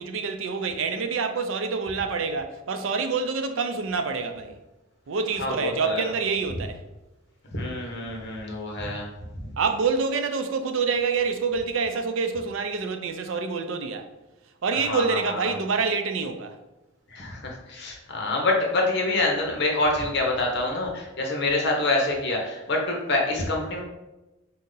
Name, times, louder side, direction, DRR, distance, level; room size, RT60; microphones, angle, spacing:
voice 1, 0.0-4.6 5.1-6.8 9.6-14.1 14.6-16.5, right 5 dB, 75° right, 0.4 m, -27 dB
voice 2, 5.4-6.1 7.5-9.1 14.7-15.5 17.1-23.8, left 2 dB, 55° left, 0.9 m, -26 dB
4.2 x 2.7 x 3.8 m
head